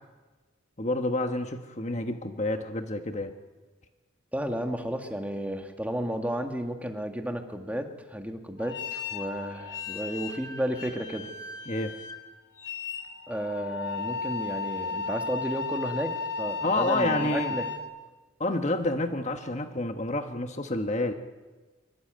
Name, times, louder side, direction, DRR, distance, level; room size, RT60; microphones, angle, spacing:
voice 1, 0.8-3.3 11.7-11.9 16.6-17.6 18.4-21.1, left 2 dB, 35° left, 7 dB, 1.3 m, -29 dB
voice 2, 4.3-11.3 13.3-17.7, equal, 10° right, 4 dB, 2.0 m, -33 dB
Coupled Guitar, 8.6-17.8, left 4 dB, 85° left, 3.3 m, -35 dB
24.5 x 24.0 x 9.2 m, 1.3 s
head